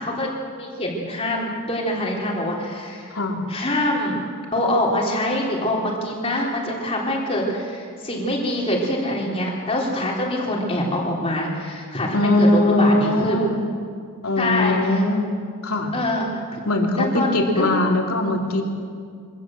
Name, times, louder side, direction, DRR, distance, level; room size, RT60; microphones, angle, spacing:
voice 1, 0.0-3.1 3.5-4.2 4.5-13.4 14.4-15.0 15.9-16.6 16.9-17.7, left 1 dB, 25° left, -3 dB, 3.6 m, -25 dB
voice 2, 12.1-13.7 14.2-15.3 15.6-15.9 16.6-18.6, left 2 dB, 85° left, 0 dB, 3.3 m, -20 dB
24.5 x 17.0 x 7.7 m, 2.2 s
head